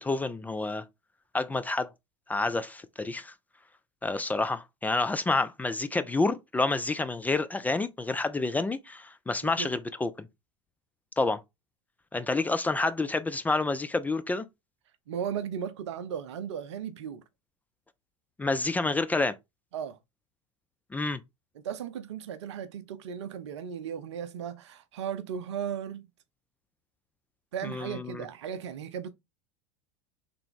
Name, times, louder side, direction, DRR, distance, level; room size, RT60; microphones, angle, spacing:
voice 1, 0.0-0.8 1.3-1.9 2.3-3.3 4.0-10.3 11.2-11.4 12.1-14.5 18.4-19.3 20.9-21.2 27.6-28.2, left 3 dB, 10° left, 0.3 m, -29 dB
voice 2, 15.1-17.2 19.7-20.0 21.5-26.1 27.5-29.1, right 8 dB, 65° right, 0.6 m, -36 dB
3.4 x 3.4 x 3.6 m
figure-of-eight pair, 80°, 16 cm